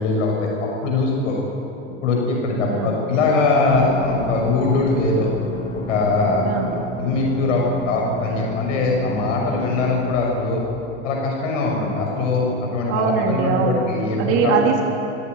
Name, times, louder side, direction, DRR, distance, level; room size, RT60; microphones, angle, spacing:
voice 1, 0.0-1.4 2.0-5.3 5.9-6.5 7.0-10.6 11.0-14.5, left 3 dB, 85° left, 0 dB, 6.5 m, -21 dB
voice 2, 2.6-3.0 6.4-6.8 12.9-13.9 14.2-14.8, right 5 dB, 40° right, 0 dB, 3.4 m, -21 dB
sound 1, 3.7-10.2, left 1 dB, 15° left, 2.1 m, -32 dB
28.0 x 17.0 x 9.6 m, 3.0 s
supercardioid pair, 160°, 37 cm